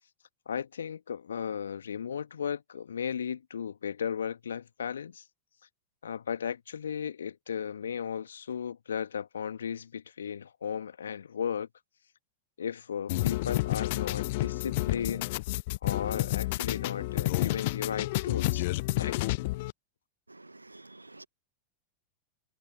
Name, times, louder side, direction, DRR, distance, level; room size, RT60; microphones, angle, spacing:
voice 1, 0.5-5.2 6.0-11.7 12.6-15.4 15.8-18.7 19.0-19.2, left 7 dB, 70° left, 1.9 m, -35 dB
sound 1, 13.1-19.7, left 21 dB, 50° left, 0.9 m, -30 dB
voice 2, 20.3-21.3, right 2 dB, 85° right, 1.1 m, -50 dB
figure-of-eight pair, 90°, 0 cm